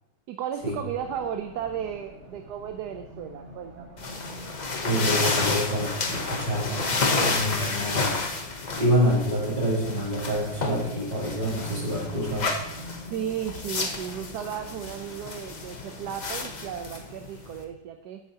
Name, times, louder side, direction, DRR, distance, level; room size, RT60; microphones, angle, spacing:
voice 1, 0.3-3.9 13.1-18.2, right 9 dB, 70° right, 6 dB, 1.1 m, -34 dB
Race car auto racing, 0.6-17.2, equal, 45° right, 2.0 m, -46 dB
sound 1, 4.0-17.6, left 3 dB, 45° left, 0.6 m, -31 dB
voice 2, 4.8-6.9 7.2-8.3 8.8-12.5, equal, 25° right, -5 dB, 3.1 m, -27 dB
13.5 x 8.3 x 2.8 m, 0.88 s
omnidirectional pair, 2.0 m